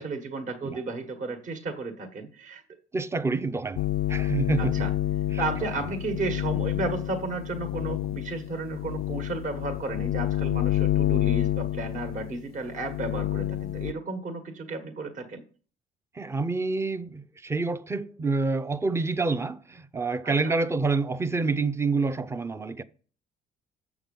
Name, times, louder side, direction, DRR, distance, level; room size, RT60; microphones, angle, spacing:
voice 1, 0.0-2.6 4.7-4.9 5.4-15.4 20.4-20.5, right 3 dB, 50° right, 1.5 m, -33 dB
voice 2, 2.9-4.9 5.3-5.9 16.1-22.8, right 3 dB, 15° right, 0.6 m, -28 dB
sound 1, 3.8-13.9, left 13 dB, 65° left, 0.4 m, -28 dB
7.5 x 6.0 x 5.4 m
cardioid pair, 110°, 17 cm